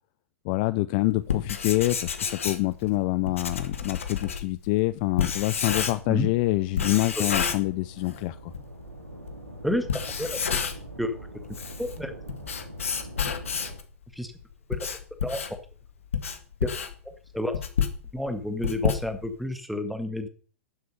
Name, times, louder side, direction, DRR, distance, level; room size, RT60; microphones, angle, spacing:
voice 1, 0.4-8.5, left 20 dB, 40° left, 0.5 m, -26 dB
Writing, 1.2-6.2 6.8-8.2 8.5-8.6 9.3-9.4 9.8-11.0 11.3-13.9 14.4-19.5, left 7 dB, 65° left, 1.9 m, -30 dB
sound 1, 5.6-13.8, right 1 dB, 85° right, 2.9 m, -44 dB
voice 2, 10.2-10.6 11.0-11.1 11.8-12.1 14.1-14.3 14.7-14.9 15.2-15.4 16.6-16.7 17.3-17.5 18.1-20.3, left 1 dB, ahead, 1.9 m, -30 dB
12.0 x 7.7 x 6.8 m
figure-of-eight pair, 100°, 8 cm